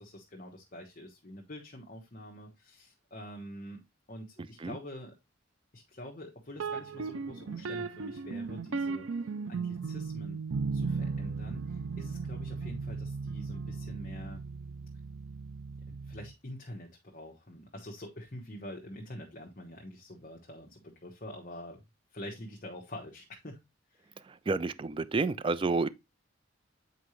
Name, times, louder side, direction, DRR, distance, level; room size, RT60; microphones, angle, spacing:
voice 1, 0.0-5.1 5.7-9.1 9.5-10.4 10.7-14.4 15.9-21.8 22.1-23.6 23.9-24.1, left 1 dB, 40° left, 1.1 m, -46 dB
sound 1, 6.5-16.3, right 4 dB, 90° right, 0.5 m, -36 dB
voice 2, 24.5-25.9, right 3 dB, 25° right, 0.3 m, -29 dB
8.1 x 4.7 x 3.1 m
head